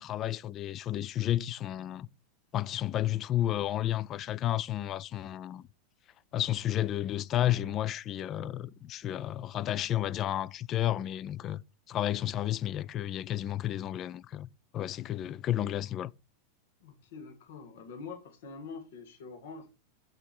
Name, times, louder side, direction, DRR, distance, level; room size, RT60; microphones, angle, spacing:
voice 1, 0.0-2.1 2.5-5.6 6.3-11.6 11.9-14.5 14.7-16.1, left 12 dB, 35° left, 0.4 m, -32 dB
voice 2, 16.8-19.7, left 4 dB, 70° left, 1.7 m, -45 dB
6.6 x 5.9 x 4.7 m
hypercardioid pair, 110°, 0 cm